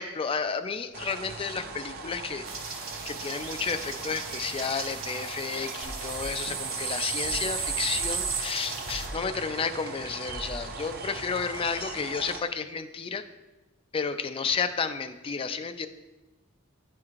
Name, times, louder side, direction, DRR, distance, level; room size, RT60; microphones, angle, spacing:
voice 1, 0.0-2.4 3.0-13.2 13.9-15.9, left 5 dB, 25° left, 10 dB, 0.3 m, -32 dB
sound 1, 0.9-12.4, right 4 dB, 45° right, 0.5 m, -40 dB
sound 2, 2.5-9.1, right 5 dB, 75° right, 1.2 m, -35 dB
sound 3, 5.8-11.7, equal, 55° left, 0.9 m, -43 dB
10.5 x 4.5 x 2.4 m, 1.1 s
head